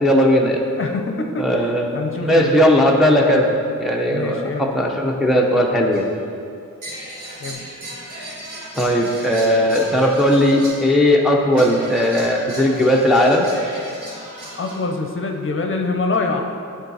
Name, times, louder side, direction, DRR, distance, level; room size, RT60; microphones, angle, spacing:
voice 1, 0.0-0.6 1.4-6.1 8.7-13.5, equal, ahead, -1 dB, 0.5 m, -17 dB
voice 2, 0.8-2.5 4.1-4.7 7.4-7.6 14.6-16.4, left 3 dB, 45° left, 3 dB, 0.6 m, -25 dB
sound 1, 5.9-6.1 6.8-11.1 11.5-14.8, right 1 dB, 75° right, 1.9 m, -36 dB
10.5 x 3.9 x 4.0 m, 2.4 s
wide cardioid pair, 150°, 31 cm